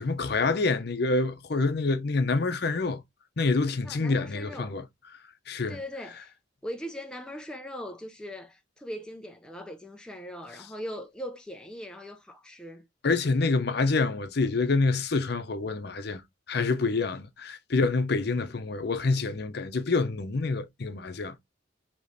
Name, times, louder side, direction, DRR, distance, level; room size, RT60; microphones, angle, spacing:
voice 1, 0.0-3.0 3.4-4.8 5.5-5.8 13.0-16.2 16.5-21.3, left 3 dB, 55° left, 0.6 m, -27 dB
voice 2, 3.8-4.7 5.7-6.3 6.6-12.9, equal, 5° left, 0.4 m, -40 dB
4.9 x 3.0 x 2.6 m
head